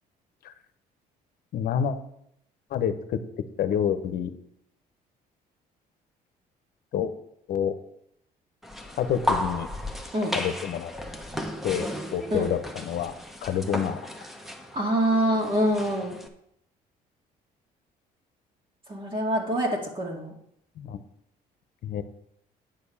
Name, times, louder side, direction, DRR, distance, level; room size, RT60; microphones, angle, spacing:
voice 1, 1.5-2.0 2.7-3.2 3.6-4.3 6.9-7.1 7.5-7.7 9.0-9.7 10.3-10.9 11.6-13.1 13.4-14.0 20.8-21.0 21.8-22.0, left 8 dB, 60° left, 11 dB, 0.9 m, -28 dB
sound 1, 8.6-16.3, left 1 dB, ahead, 1.1 m, -34 dB
voice 2, 14.7-16.2 18.9-20.3, equal, 30° right, -1 dB, 2.1 m, -25 dB
9.4 x 4.6 x 7.1 m, 0.73 s
cardioid pair, 110°, 17 cm